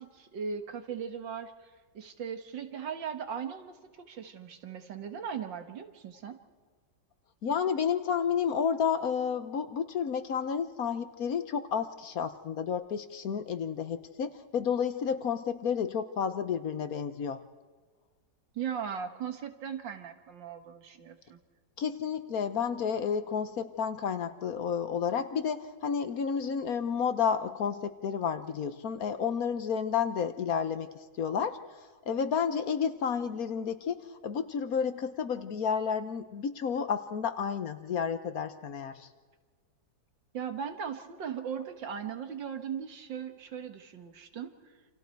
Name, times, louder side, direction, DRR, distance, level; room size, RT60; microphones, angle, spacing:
voice 1, 0.0-6.4 18.6-21.4 40.3-44.5, right 7 dB, 85° right, 7 dB, 2.3 m, -38 dB
voice 2, 7.4-17.4 21.8-30.9 31.2-31.6 32.1-39.1, left 7 dB, 60° left, 11 dB, 1.3 m, -31 dB
28.5 x 27.0 x 4.6 m, 1.5 s
omnidirectional pair, 1.9 m